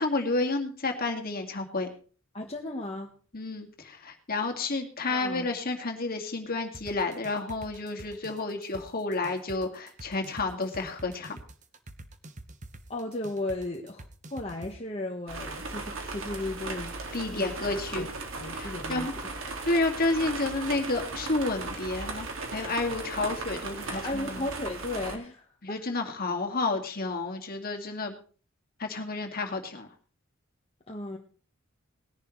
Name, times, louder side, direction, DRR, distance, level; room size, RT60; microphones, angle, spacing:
voice 1, 0.0-1.9 3.3-11.4 17.1-18.1 18.5-19.1 19.6-24.5 25.6-28.2 28.8-29.9, left 3 dB, 50° left, 3 dB, 2.2 m, -30 dB
voice 2, 2.3-3.1 5.1-5.5 12.9-16.9 17.3-18.1 18.4-19.1 23.9-25.9 30.9-31.2, left 2 dB, 30° left, 1 dB, 1.3 m, -35 dB
sound 1, 6.7-14.7, right 2 dB, 40° right, 1.1 m, -45 dB
sound 2, 15.3-25.2, right 3 dB, 80° right, 2.2 m, -37 dB
19.5 x 10.5 x 3.2 m, 0.41 s
head